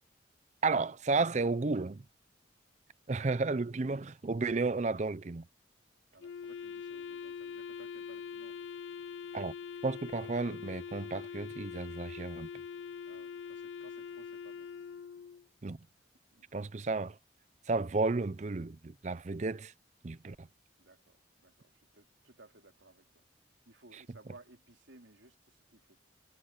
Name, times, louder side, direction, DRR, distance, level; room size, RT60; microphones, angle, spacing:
voice 1, 0.6-2.0 3.1-5.4 9.3-9.5 9.8-12.5 15.6-15.8 16.5-17.2 17.7-19.7 20.0-20.5, right 3 dB, 40° right, 0.5 m, -32 dB
voice 2, 6.1-8.6 13.0-14.7 16.1-16.6 20.8-23.2 23.6-26.0, right 2 dB, 85° right, 3.4 m, -59 dB
Wind instrument woodwind instrument, 6.2-15.5, left 6 dB, 75° left, 0.4 m, -43 dB
head